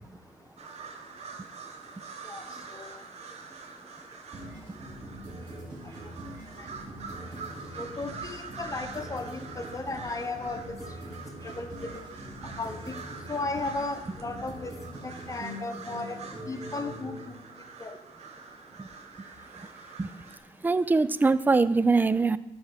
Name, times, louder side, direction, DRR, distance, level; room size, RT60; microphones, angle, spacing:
sound 1, 0.6-20.4, right 5 dB, 55° right, 1.1 m, -45 dB
sound 2, 4.3-17.2, right 1 dB, 35° right, 3.4 m, -43 dB
voice 1, 7.8-10.8 11.4-11.9 12.6-12.9 13.3-14.7 15.0-16.2 16.5-17.3 17.8-17.9, left 3 dB, 25° left, 7 dB, 0.9 m, -35 dB
voice 2, 20.6-22.4, right 3 dB, 15° right, 16 dB, 0.3 m, -23 dB
11.5 x 4.7 x 5.6 m, 0.99 s
cardioid pair, 110°, 13 cm